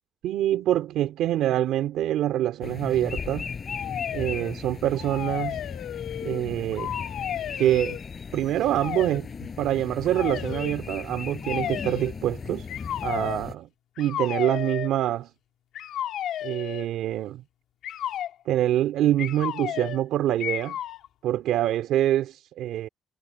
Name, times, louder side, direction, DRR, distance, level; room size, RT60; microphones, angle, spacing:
voice 1, 0.2-3.5 4.1-5.6 6.2-6.9 7.6-8.0 8.3-12.7 13.0-13.7 14.0-15.3 16.4-17.4 18.5-20.8 21.2-22.9, right 12 dB, 85° right, 2.7 m, -25 dB
sound 1, 2.6-13.5, left 5 dB, 40° left, 7.3 m, -36 dB
sound 2, 3.7-4.5 4.9-6.4 6.7-8.0 8.7-9.2 10.1-10.7 11.4-12.2 12.7-13.4 14.0-14.9 15.7-16.9 17.8-18.3 19.2-20.1 20.4-21.1, left 11 dB, 80° left, 2.7 m, -33 dB
cardioid pair, 90°, 0 cm